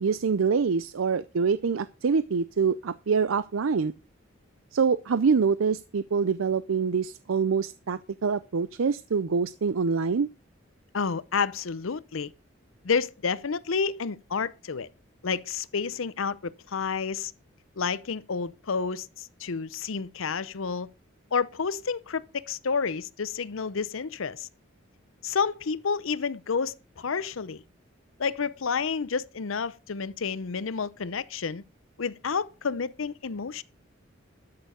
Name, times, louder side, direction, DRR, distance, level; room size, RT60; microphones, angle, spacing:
voice 1, 0.0-3.9 4.7-10.3, right 5 dB, 90° right, 0.5 m, -25 dB
voice 2, 10.9-12.3 12.8-14.9 15.2-17.3 17.8-20.9 21.3-24.5 25.2-27.6 28.2-31.6 32.0-33.6, left 5 dB, 80° left, 0.7 m, -30 dB
12.5 x 6.8 x 5.1 m
head